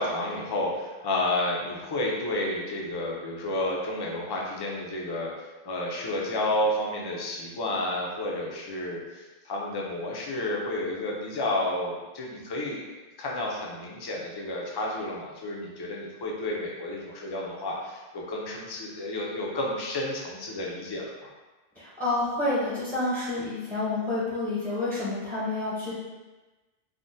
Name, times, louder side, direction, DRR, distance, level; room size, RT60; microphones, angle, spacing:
voice 1, 0.0-5.3 5.6-12.8 13.2-21.3, left 1 dB, 40° left, -3 dB, 0.3 m, -31 dB
voice 2, 21.8-25.9, left 2 dB, 10° right, -10 dB, 0.6 m, -29 dB
3.6 x 2.1 x 2.6 m, 1.2 s
omnidirectional pair, 1.1 m